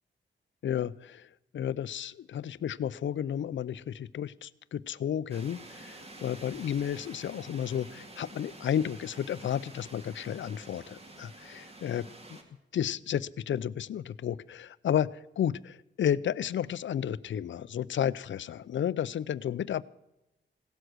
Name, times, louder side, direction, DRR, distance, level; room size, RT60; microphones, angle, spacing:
voice 1, 0.6-12.4 12.7-19.8, left 9 dB, 75° left, 18 dB, 0.6 m, -32 dB
sound 1, 5.3-12.4, right 2 dB, 30° right, 2.2 m, -49 dB
17.0 x 13.0 x 6.2 m, 0.91 s
wide cardioid pair, 170°, 19 cm